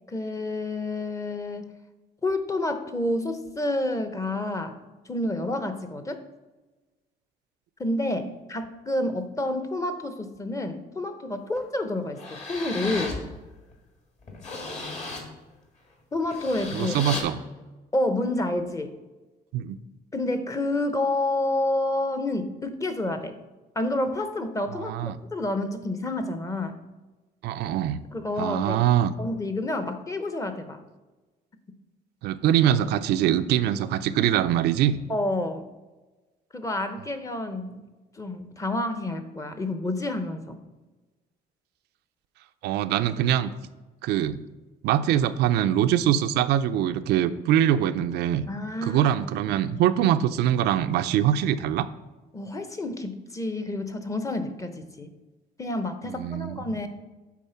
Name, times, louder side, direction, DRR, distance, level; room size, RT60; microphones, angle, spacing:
voice 1, 0.1-1.8 2.2-4.8 5.1-6.2 7.8-13.2 16.1-17.0 17.9-19.0 20.1-23.4 23.8-26.8 28.1-28.8 29.2-30.8 35.1-35.7 36.5-37.9 38.2-40.6 48.5-49.1 52.3-55.1 55.6-56.9, left 2 dB, 20° left, 8 dB, 0.8 m, -29 dB
sound 1, 11.6-11.7 12.1-13.2 13.7-13.8 14.2-15.3 16.2-17.2, left 3 dB, 40° left, 1.8 m, -35 dB
voice 2, 16.7-17.4 19.5-19.8 24.7-25.2 27.4-28.0 28.4-29.1 32.2-35.0 42.6-43.5 44.0-44.4 44.8-48.5 48.8-51.9 56.1-56.6, right 11 dB, 80° right, 10 dB, 0.5 m, -23 dB
8.4 x 4.2 x 5.7 m, 1.2 s
cardioid pair, 110°, 17 cm